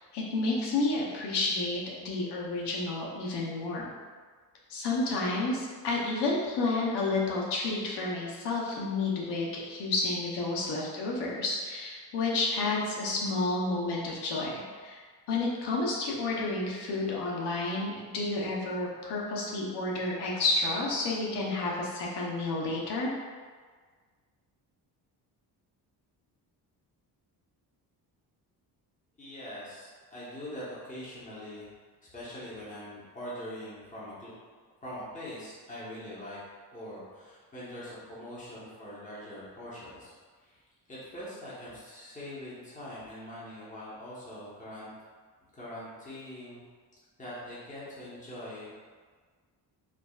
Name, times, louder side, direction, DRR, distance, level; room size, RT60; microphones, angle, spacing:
voice 1, 0.1-3.9 4.7-15.0 15.3-23.1, left 3 dB, 85° left, -3 dB, 0.9 m, -30 dB
voice 2, 29.2-31.7 32.0-34.3 34.8-36.4 36.7-40.1 40.4-40.6 40.9-44.9 45.5-46.6 47.2-48.7, left 1 dB, 20° left, -8 dB, 1.1 m, -43 dB
4.8 x 2.4 x 2.4 m, 1.6 s
cardioid pair, 120°, 40 cm